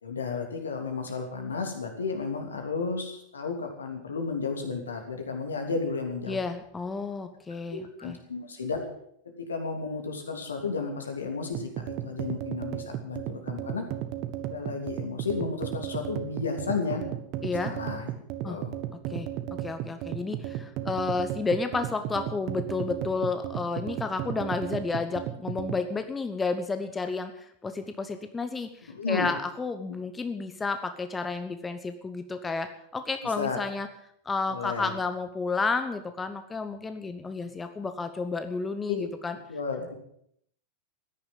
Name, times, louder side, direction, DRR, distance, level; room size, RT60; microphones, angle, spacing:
voice 1, 0.0-6.4 7.7-8.8 9.4-13.8 14.5-17.0 17.6-18.1 18.4-18.8 28.9-29.3 33.4-33.6 34.5-34.9 38.9-39.1 39.5-39.9, left 4 dB, 70° left, 4 dB, 3.0 m, -33 dB
voice 2, 6.3-8.2 17.4-17.7 18.4-18.6 19.1-33.9 34.2-39.4, left 4 dB, 15° left, 9 dB, 1.0 m, -31 dB
sound 1, 11.5-25.8, right 12 dB, 40° right, 1.3 m, -34 dB
14.5 x 10.5 x 7.6 m, 0.70 s
figure-of-eight pair, 90°, 0 cm